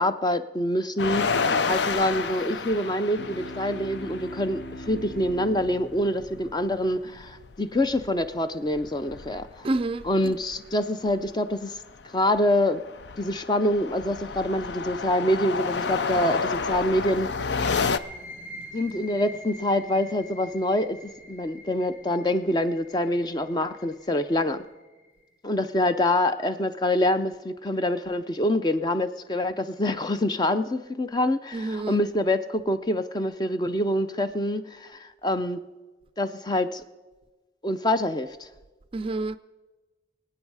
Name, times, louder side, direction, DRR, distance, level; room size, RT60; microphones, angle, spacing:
voice 1, 0.0-9.7 10.1-11.7 12.1-12.8 13.2-17.3 18.7-24.7 25.4-35.6 36.2-36.8 37.6-38.5, left 1 dB, 25° left, 0.5 m, -26 dB
sound 1, 1.0-5.4 5.6-5.7 6.0-8.4 8.7-10.5 11.1-11.3 11.8-18.0, left 5 dB, 90° left, 0.5 m, -30 dB
sound 2, 3.2-8.0, equal, 65° left, 1.5 m, -42 dB
voice 2, 9.6-10.1 31.5-32.0 38.9-39.4, right 2 dB, 30° right, 0.4 m, -28 dB
sound 3, 17.8-25.2, left 1 dB, 50° left, 3.1 m, -46 dB
24.5 x 8.8 x 4.8 m
head